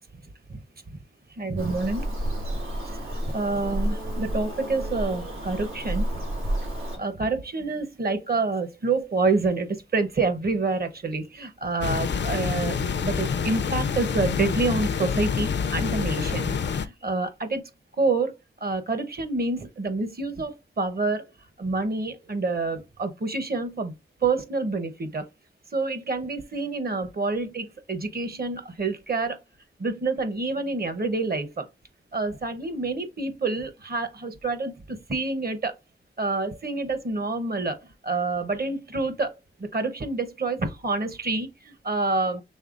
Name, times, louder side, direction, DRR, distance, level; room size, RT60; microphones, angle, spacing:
voice 1, 1.4-2.1 3.1-6.1 6.9-17.6 18.0-18.3 18.6-21.2 21.6-23.9 24.2-25.3 25.7-29.4 29.8-31.7 32.1-35.7 36.2-37.8 38.0-39.3 39.6-42.4, right 3 dB, 50° right, 0.8 m, -27 dB
Bird vocalization bird call bird song, 1.6-7.0, right 1 dB, 85° right, 2.3 m, -30 dB
sound 1, 11.8-16.9, left 6 dB, 60° left, 0.4 m, -27 dB
5.4 x 3.5 x 2.5 m
wide cardioid pair, 100°, 21 cm